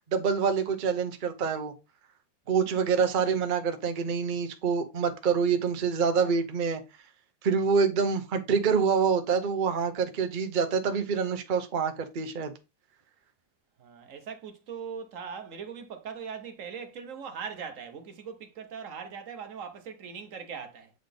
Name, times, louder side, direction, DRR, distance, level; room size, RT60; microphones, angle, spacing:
voice 1, 0.1-1.7 2.5-6.8 7.4-12.5, right 6 dB, 75° right, 0.4 m, -26 dB
voice 2, 2.5-2.9 13.8-20.9, right 6 dB, 55° right, 1.0 m, -40 dB
8.1 x 3.9 x 3.5 m
omnidirectional pair, 2.1 m